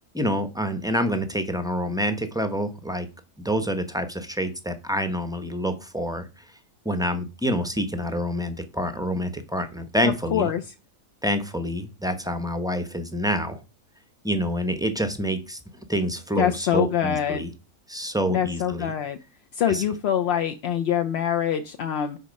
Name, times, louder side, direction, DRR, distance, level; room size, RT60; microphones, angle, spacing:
voice 1, 0.1-3.1 3.4-6.3 6.8-10.5 11.2-13.6 14.2-15.6 15.9-17.5 17.9-18.9 19.7-19.8, equal, 5° right, 8 dB, 0.5 m, -27 dB
voice 2, 10.0-10.6 16.4-17.4 18.3-19.2 19.5-22.2, left 9 dB, 60° left, 7 dB, 0.7 m, -24 dB
10.0 x 4.2 x 5.2 m, 0.30 s
omnidirectional pair, 1.7 m